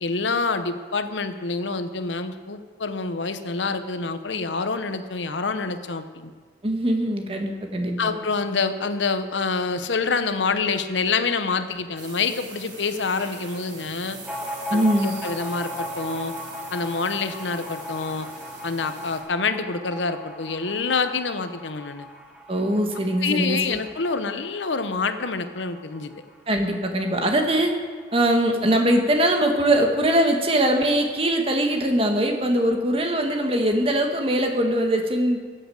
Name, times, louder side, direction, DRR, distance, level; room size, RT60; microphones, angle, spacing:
voice 1, 0.0-6.3 8.0-14.2 14.7-16.3 16.7-18.3 18.6-22.1 23.2-26.1, left 4 dB, 90° left, 10 dB, 0.9 m, -27 dB
voice 2, 6.6-8.1 14.7-15.1 22.5-23.8 26.5-27.7 28.1-35.4, right 1 dB, 30° right, 4 dB, 1.5 m, -22 dB
sound 1, 12.0-19.2, right 3 dB, 85° right, 3.9 m, -42 dB
sound 2, 14.2-27.4 27.7-27.8 28.0-28.8, left 1 dB, 5° right, 1.2 m, -38 dB
16.0 x 7.9 x 7.7 m, 1.5 s
head